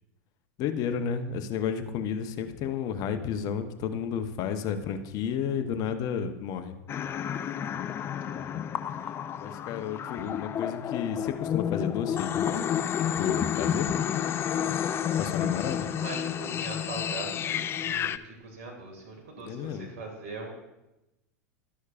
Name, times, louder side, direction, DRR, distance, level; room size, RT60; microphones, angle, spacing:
voice 1, 0.6-6.7 9.4-12.6 13.0-13.9 15.2-15.9 19.4-19.9, left 7 dB, 45° left, 8 dB, 0.7 m, -32 dB
sound 1, 6.9-18.2, left 9 dB, 30° left, 0.3 m, -30 dB
voice 2, 7.6-7.9 8.2-9.1 15.1-20.5, right 3 dB, 65° right, 0 dB, 1.9 m, -42 dB
12.0 x 6.4 x 2.4 m, 0.96 s
hypercardioid pair, 95°, 9 cm